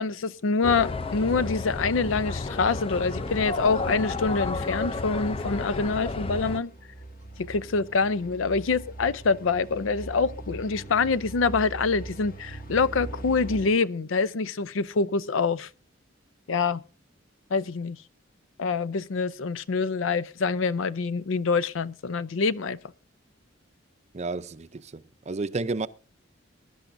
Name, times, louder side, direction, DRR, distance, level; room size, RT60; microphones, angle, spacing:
voice 1, 0.0-6.7 7.4-15.7 16.5-16.8 17.5-18.0 18.6-22.8, left 4 dB, 80° left, 0.5 m, -26 dB
sound 1, 0.6-6.6, left 3 dB, 30° left, 0.5 m, -32 dB
sound 2, 5.2-13.7, right 2 dB, 45° left, 1.4 m, -42 dB
voice 2, 24.1-25.9, right 3 dB, 35° right, 0.5 m, -31 dB
22.0 x 11.0 x 2.6 m
head